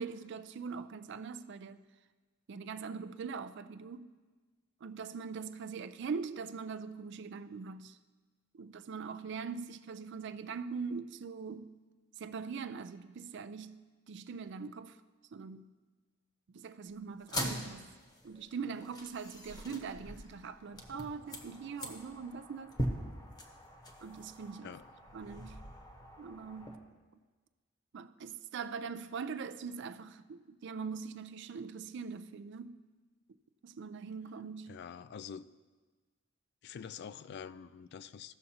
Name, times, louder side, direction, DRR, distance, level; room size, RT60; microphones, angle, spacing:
voice 1, 0.0-1.8 2.5-4.1 4.8-8.0 8.5-11.8 12.2-15.0 15.3-15.7 16.5-17.9 18.2-22.8 24.0-24.7 25.1-25.6 26.2-26.9 27.9-32.8 33.6-34.8, right 5 dB, 60° right, 0.4 m, -42 dB
sound 1, 17.2-26.8, equal, 20° left, 0.9 m, -42 dB
voice 2, 34.7-35.5 36.6-38.3, left 7 dB, 55° left, 0.3 m, -46 dB
15.5 x 6.6 x 2.8 m
head